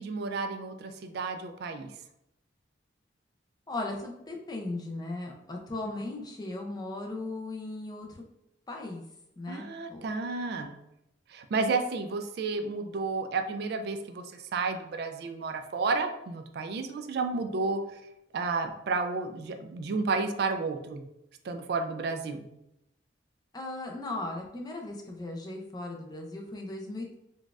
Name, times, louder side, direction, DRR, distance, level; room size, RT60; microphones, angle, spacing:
voice 1, 0.0-1.9 9.5-10.7 11.3-17.8 18.3-21.0 21.4-22.5, right 4 dB, 55° right, 7 dB, 0.3 m, -31 dB
voice 2, 3.7-8.1 8.7-9.0 9.4-10.0 23.5-27.1, left 2 dB, 20° left, 1 dB, 0.4 m, -37 dB
3.9 x 2.3 x 2.3 m, 0.82 s
head